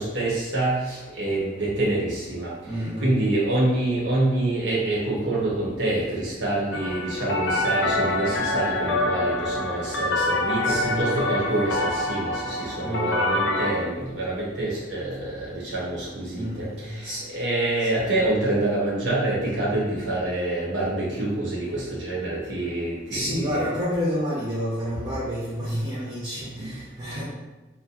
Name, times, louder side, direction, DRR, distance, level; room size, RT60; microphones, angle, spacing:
voice 1, 0.0-23.6, right 2 dB, 80° right, -6 dB, 0.9 m, -26 dB
voice 2, 2.7-3.2 10.6-11.1 12.8-13.3 16.4-17.2 17.8-17.9 23.1-27.2, equal, 20° right, -7 dB, 0.5 m, -29 dB
sound 1, 6.7-13.7, left 2 dB, 75° left, 0.5 m, -25 dB
3.8 x 2.1 x 2.8 m, 1.1 s
head